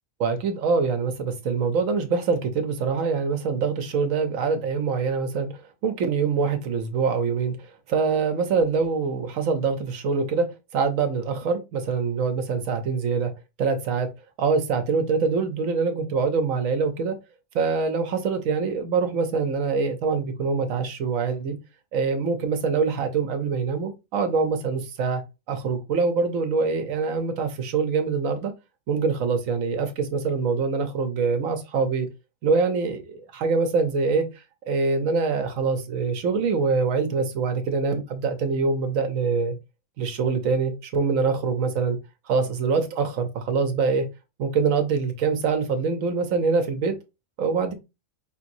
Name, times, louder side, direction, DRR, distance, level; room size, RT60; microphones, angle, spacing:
voice 1, 0.2-5.5 5.8-7.6 7.9-13.3 13.6-14.1 14.4-17.2 17.5-21.6 21.9-25.2 25.5-28.5 28.9-32.1 32.4-34.3 34.7-39.5 40.0-42.0 42.3-44.1 44.4-46.9 47.4-47.7, right 5 dB, 75° right, 1.2 m, -24 dB
5.0 x 2.9 x 2.6 m
omnidirectional pair, 1.4 m